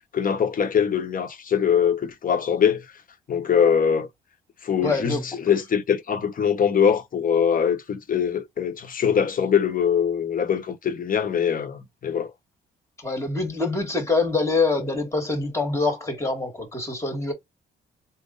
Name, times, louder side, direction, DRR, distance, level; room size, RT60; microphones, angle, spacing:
voice 1, 0.1-2.9 3.3-4.1 4.6-12.3, left 7 dB, 45° left, 1.0 m, -22 dB
voice 2, 4.8-5.2 13.0-17.3, left 3 dB, 15° left, 2.0 m, -25 dB
3.5 x 2.2 x 3.9 m
cardioid pair, 90°, 20 cm